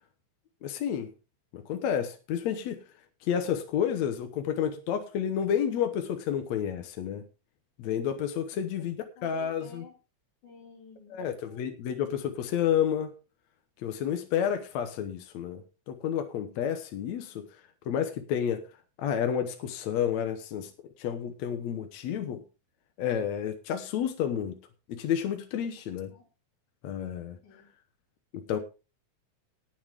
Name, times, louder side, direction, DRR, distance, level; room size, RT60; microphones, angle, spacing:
voice 1, 0.6-1.1 1.5-2.8 3.2-7.2 7.8-9.8 11.1-13.1 13.8-17.5 17.9-18.7 19.0-20.7 21.0-22.4 23.0-24.6 24.9-26.1 26.8-27.4 28.3-28.6, left 9 dB, 70° left, 2.3 m, -30 dB
voice 2, 9.2-10.0 10.4-11.6 23.9-24.0 26.1-26.3 27.4-27.7, left 4 dB, 85° left, 4.2 m, -52 dB
19.0 x 7.5 x 3.6 m
omnidirectional pair, 3.4 m